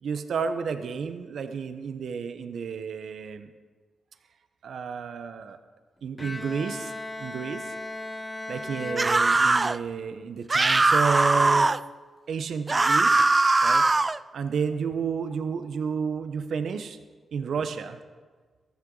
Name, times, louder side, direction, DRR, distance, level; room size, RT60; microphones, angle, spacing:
voice 1, 0.0-3.5 4.6-5.6 6.0-6.9 7.2-7.7 8.5-11.7 12.3-13.2 13.6-13.8 14.3-17.0 17.3-18.0, right 6 dB, 75° right, 9 dB, 0.9 m, -31 dB
Bowed string instrument, 6.2-9.9, left 2 dB, 20° left, 1.0 m, -37 dB
sound 1, 9.0-9.8 10.5-11.8 12.7-14.2, right 3 dB, 30° right, 0.4 m, -21 dB
14.0 x 13.5 x 3.9 m, 1.5 s
cardioid pair, 60°, 0 cm